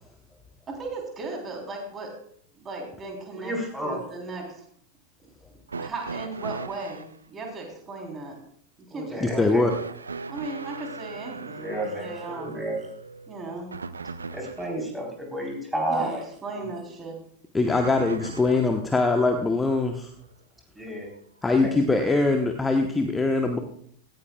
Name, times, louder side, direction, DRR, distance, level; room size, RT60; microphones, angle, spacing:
voice 1, 0.7-2.2 2.5-3.5 3.8-4.6 5.8-8.4 8.9-9.5 10.3-12.6 13.3-13.7 15.8-17.2, right 3 dB, 20° right, 1 dB, 3.6 m, -36 dB
voice 2, 3.4-4.0 8.9-9.7 11.4-12.9 14.3-16.2 16.5-16.7 17.7-17.8 20.7-21.1 21.4-21.7, right 1 dB, 5° right, 0 dB, 3.9 m, -32 dB
sound 1, 5.7-7.1 9.7-14.8 17.7-18.8 20.0-20.1 21.2-21.3, right 4 dB, 75° right, 0.5 m, -38 dB
voice 3, 9.2-9.7 17.5-20.1 21.4-23.6, left 3 dB, 10° left, 4 dB, 1.0 m, -22 dB
17.0 x 14.5 x 2.3 m, 0.63 s
figure-of-eight pair, 90°, 0 cm